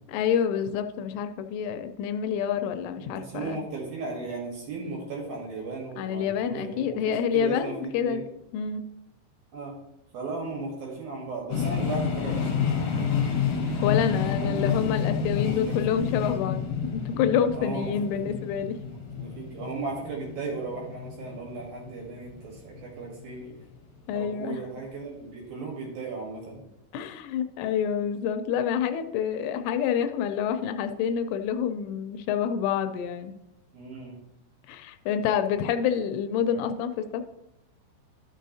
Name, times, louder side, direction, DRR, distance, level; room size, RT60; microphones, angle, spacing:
voice 1, 0.1-3.6 6.0-8.2 8.5-8.9 13.8-18.8 24.1-24.6 26.9-33.3 34.7-37.2, left 8 dB, 85° left, 9 dB, 3.0 m, -27 dB
voice 2, 3.0-8.2 9.5-9.8 10.1-13.1 14.0-14.8 15.4-16.1 17.5-18.5 18.9-23.6 24.1-26.6 33.7-34.2, right 3 dB, 65° right, -1 dB, 2.6 m, -36 dB
sound 1, 11.5-23.3, left 6 dB, 60° left, 2.1 m, -29 dB
12.0 x 6.3 x 2.7 m, 0.89 s
omnidirectional pair, 5.5 m